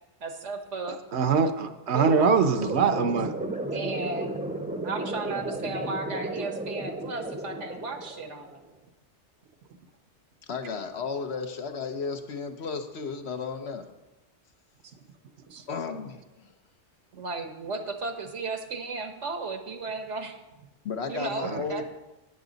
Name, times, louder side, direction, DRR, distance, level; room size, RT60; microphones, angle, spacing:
voice 1, 0.2-1.0 1.9-2.4 3.7-4.4 4.8-8.6 15.5-15.6 17.1-20.4 21.1-21.8, right 3 dB, 85° right, 6 dB, 1.6 m, -34 dB
voice 2, 0.9-3.3 21.4-21.6, right 5 dB, 70° right, 9 dB, 1.0 m, -23 dB
sound 1, 2.5-8.5, right 2 dB, 10° right, 0.6 m, -34 dB
voice 3, 10.5-13.9 15.7-16.5 20.8-21.8, left 5 dB, 65° left, 6 dB, 1.2 m, -34 dB
12.0 x 9.3 x 4.0 m, 1.0 s
omnidirectional pair, 1.2 m